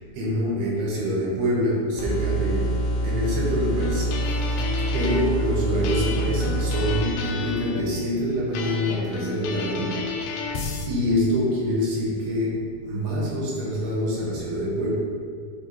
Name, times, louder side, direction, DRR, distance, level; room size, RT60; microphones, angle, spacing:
voice 1, 0.0-4.6 4.9-10.6 10.9-14.9, equal, 75° right, -5 dB, 3.2 m, -26 dB
sound 1, 2.0-7.0, right 1 dB, 70° left, 2.3 m, -26 dB
sound 2, 3.8-5.3 5.8-7.9 8.5-10.9, left 5 dB, 85° left, 1.9 m, -32 dB
10.0 x 4.4 x 2.9 m, 2.1 s
omnidirectional pair, 4.7 m